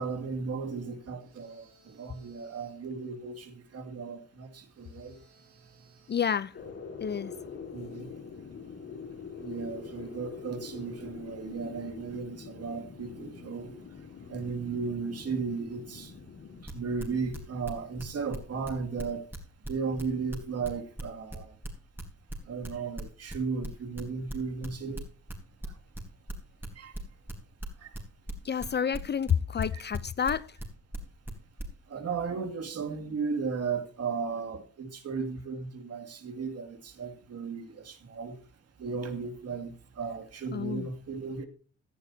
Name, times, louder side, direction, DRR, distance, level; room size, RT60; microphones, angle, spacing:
voice 1, 0.0-5.2 7.7-8.1 9.4-13.7 14.3-16.1 16.6-19.2 19.7-21.5 22.5-25.0 26.8-26.9 27.8-27.9 29.7-29.8 31.9-38.4 38.8-41.5, right 5 dB, 55° right, 2.4 m, -35 dB
sound 1, 1.2-2.9 4.7-6.4, right 3 dB, 70° right, 7.5 m, -63 dB
voice 2, 6.1-6.5 7.0-7.3 28.4-30.5 40.5-40.9, left 7 dB, 35° left, 0.6 m, -29 dB
sound 2, 6.5-16.7, left 5 dB, 55° left, 3.8 m, -44 dB
sound 3, 16.7-18.4 18.6-22.7 23.0-26.7 26.9-31.6, right 1 dB, 5° right, 3.8 m, -38 dB
17.0 x 11.0 x 2.8 m
cardioid pair, 90°, 30 cm